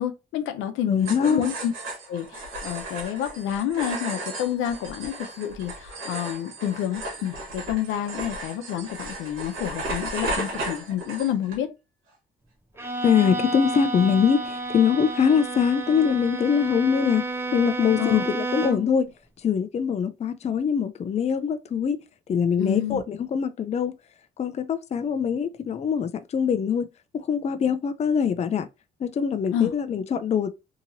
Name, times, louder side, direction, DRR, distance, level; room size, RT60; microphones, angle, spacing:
voice 1, 0.0-1.7 2.1-11.7 18.0-18.2 22.6-23.0 29.5-29.7, left 10 dB, 90° left, 0.6 m, -29 dB
voice 2, 0.9-1.4 13.0-17.2 17.5-19.1 19.4-22.0 22.3-24.0 24.4-26.9 27.1-28.7 29.0-30.5, left 7 dB, 35° left, 0.4 m, -23 dB
sound 1, 1.0-11.6, right 1 dB, 90° right, 1.3 m, -35 dB
Bowed string instrument, 12.8-19.0, right 2 dB, 10° right, 0.6 m, -31 dB
2.8 x 2.8 x 2.6 m
cardioid pair, 90°, 20 cm